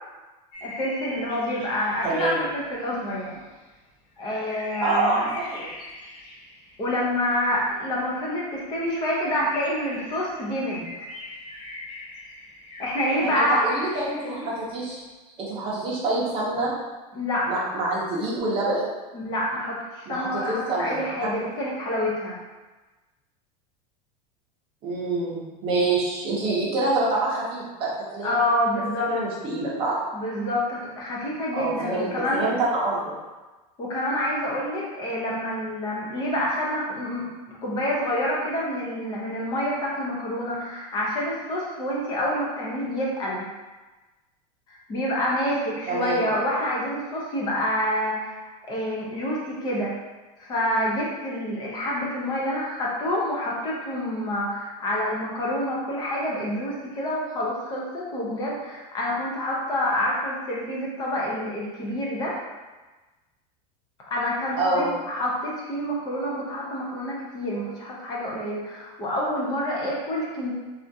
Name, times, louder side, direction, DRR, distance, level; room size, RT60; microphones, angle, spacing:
sound 1, 0.5-3.3 3.6-3.7 4.2-8.1 8.5-8.6 8.8-8.9 9.2-14.8, left 1 dB, 60° left, 1.1 m, -41 dB
voice 1, 0.6-3.3 4.2-5.2 6.8-11.1 12.8-13.6 17.1-17.5 19.1-22.4 28.2-29.1 30.1-32.4 33.8-37.3 37.6-43.5 44.7-49.9 50.4-62.4 64.1-70.5, left 1 dB, 20° left, -4 dB, 0.5 m, -27 dB
voice 2, 2.0-2.4 4.8-5.7 13.2-15.0 15.4-16.7 17.5-18.9 20.1-21.3 24.8-28.4 29.1-30.0 31.5-33.1 45.9-46.3 64.6-65.0, right 2 dB, 25° right, -6 dB, 0.7 m, -26 dB
3.4 x 2.4 x 2.6 m, 1.2 s
supercardioid pair, 175°, 21 cm